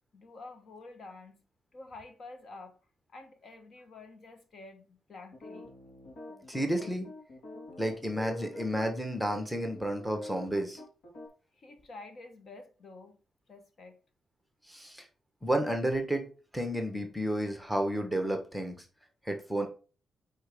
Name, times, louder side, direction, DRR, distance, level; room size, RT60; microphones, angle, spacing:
voice 1, 0.1-1.4 1.7-2.8 3.1-5.7 11.6-13.2 13.5-14.0, left 3 dB, 40° left, 1.1 m, -49 dB
sound 1, 5.3-8.9 9.2-9.3 9.7-11.3, left 1 dB, 75° left, 3.2 m, -45 dB
voice 2, 6.5-7.1 7.8-10.8 14.7-15.1 15.4-16.3 16.5-18.8 19.2-19.7, right 1 dB, ahead, 1.1 m, -31 dB
8.9 x 4.5 x 3.5 m
wide cardioid pair, 165°, 0 cm